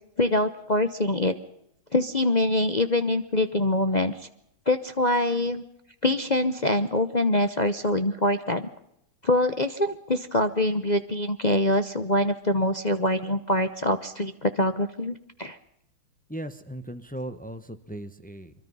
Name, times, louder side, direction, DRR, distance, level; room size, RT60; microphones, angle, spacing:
voice 1, 0.2-1.3 1.9-4.1 4.7-5.6 6.0-8.7 9.2-15.6, left 1 dB, 50° left, 8 dB, 0.5 m, -24 dB
voice 2, 16.3-18.5, right 1 dB, 5° left, 9 dB, 0.7 m, -37 dB
24.5 x 23.5 x 5.6 m, 0.77 s
omnidirectional pair, 2.3 m